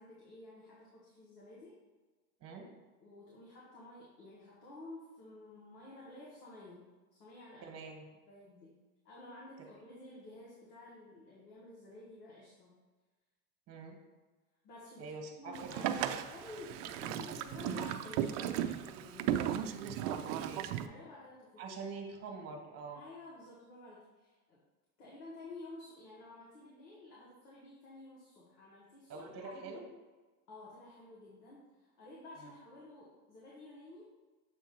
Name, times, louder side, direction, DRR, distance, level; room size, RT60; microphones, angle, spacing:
voice 1, 0.0-1.8 3.0-7.8 8.3-8.8 9.0-12.7 14.6-20.0 20.5-21.6 22.9-24.6 25.0-29.8 30.5-34.1, left 2 dB, 85° left, -5 dB, 1.7 m, -52 dB
voice 2, 7.6-8.0 13.7-14.0 15.0-16.2 20.0-20.6 21.6-23.0 29.1-29.8 32.4-32.5, right 4 dB, 30° right, 2 dB, 1.3 m, -45 dB
Boat Water vehicle, 15.5-20.9, right 10 dB, 55° right, 0.5 m, -36 dB
7.4 x 2.6 x 5.3 m, 1.3 s
supercardioid pair, 110°, 46 cm